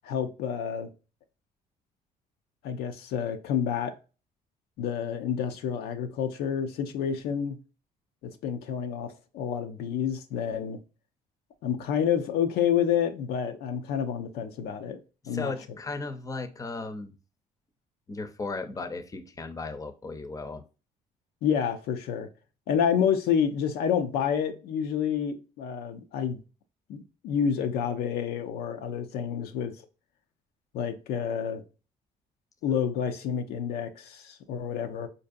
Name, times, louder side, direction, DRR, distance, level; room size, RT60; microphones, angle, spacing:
voice 1, 0.0-0.9 2.6-3.9 4.8-7.6 8.2-10.8 11.6-15.0 15.3-15.5 21.4-22.3 22.7-26.4 26.9-29.8 30.7-31.6 32.6-35.1, left 8 dB, 80° left, 0.5 m, -29 dB
voice 2, 15.2-17.1 18.1-20.6, left 3 dB, 20° left, 0.6 m, -36 dB
4.4 x 2.6 x 2.5 m
supercardioid pair, 75°, 16 cm